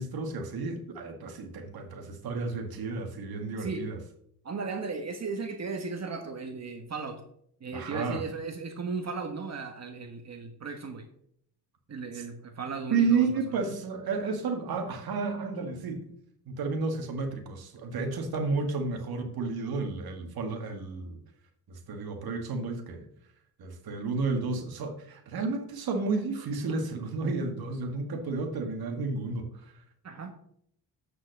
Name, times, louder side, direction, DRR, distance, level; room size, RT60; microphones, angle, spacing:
voice 1, 0.0-4.0 7.7-8.2 12.1-12.2 12.9-16.1 16.5-21.2 21.7-23.1 23.6-29.7, right 4 dB, 65° right, 4 dB, 2.2 m, -32 dB
voice 2, 3.6-3.9 4.4-7.2 7.6-11.0 11.9-13.6 30.0-30.3, right 4 dB, 40° right, 5 dB, 1.5 m, -36 dB
8.5 x 6.1 x 6.5 m, 0.68 s
cardioid pair, 95°, 39 cm